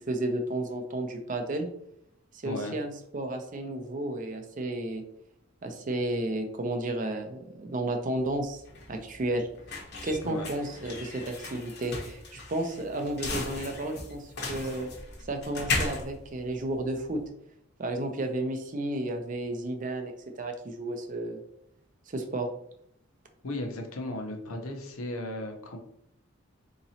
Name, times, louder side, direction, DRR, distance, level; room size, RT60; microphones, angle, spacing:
voice 1, 0.1-1.7 2.3-5.0 5.6-8.6 8.9-9.5 10.0-14.9 15.3-17.2 17.8-21.4 22.1-22.5, right 1 dB, 40° right, 5 dB, 0.4 m, -32 dB
voice 2, 2.4-2.8 10.2-10.5 23.4-25.8, left 1 dB, 85° left, 3 dB, 0.7 m, -35 dB
sound 1, 8.2-17.2, left 3 dB, 50° left, 0.8 m, -36 dB
3.9 x 2.9 x 2.7 m, 0.73 s
head